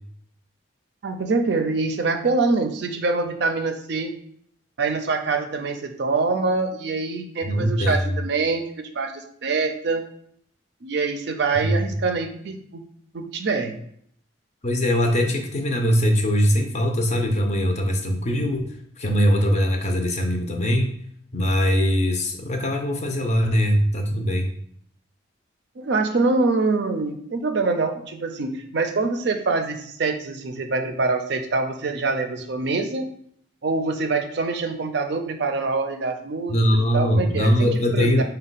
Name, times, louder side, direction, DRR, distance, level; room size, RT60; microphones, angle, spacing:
voice 1, 1.0-4.1 4.8-10.0 10.8-12.8 13.1-13.7 25.8-33.0 33.6-36.6 36.9-38.2, right 3 dB, 55° right, 6 dB, 0.4 m, -25 dB
voice 2, 7.4-8.2 11.6-11.9 14.6-21.0 21.3-24.5 36.5-38.2, equal, 35° left, 3 dB, 0.5 m, -21 dB
5.2 x 2.2 x 3.9 m, 0.65 s
head